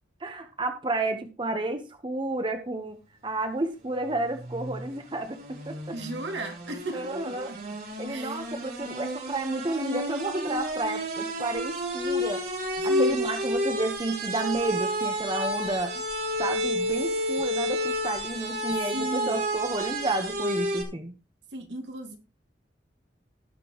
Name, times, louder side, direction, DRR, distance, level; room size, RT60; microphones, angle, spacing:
voice 1, 0.2-6.0 6.9-7.5 8.0-12.4 12.8-16.0 16.4-21.1, right 2 dB, 25° right, 7 dB, 1.0 m, -31 dB
sound 1, 4.1-20.8, equal, 55° right, 3.6 m, -31 dB
voice 2, 5.9-7.6 8.1-8.4 12.9-13.2 18.9-19.4 21.5-22.2, right 1 dB, 80° right, 4 dB, 2.4 m, -35 dB
18.0 x 6.1 x 3.0 m, 0.29 s
head